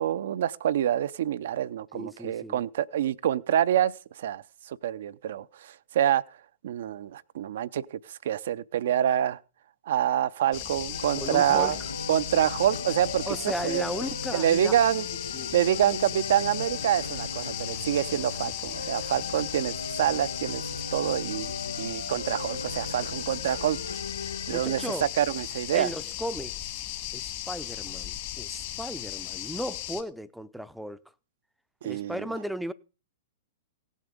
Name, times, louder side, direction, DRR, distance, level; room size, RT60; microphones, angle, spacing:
voice 1, 0.0-3.9 4.2-6.2 6.6-9.4 9.9-11.8 12.1-13.2 13.6-13.8 14.3-15.0 15.5-20.6 20.9-21.5 21.8-24.0 24.5-25.9 31.8-32.2, right 10 dB, 60° right, 0.6 m, -26 dB
voice 2, 1.9-2.6 11.2-11.8 13.3-14.7 15.3-15.5 24.5-25.1 25.7-26.8 27.1-31.0 31.8-32.7, equal, ahead, 0.6 m, -35 dB
sound 1, 10.5-30.0, left 13 dB, 45° left, 2.0 m, -36 dB
sound 2, 10.9-25.0, left 3 dB, 90° left, 0.9 m, -38 dB
17.0 x 7.2 x 5.2 m
figure-of-eight pair, 110°, 0 cm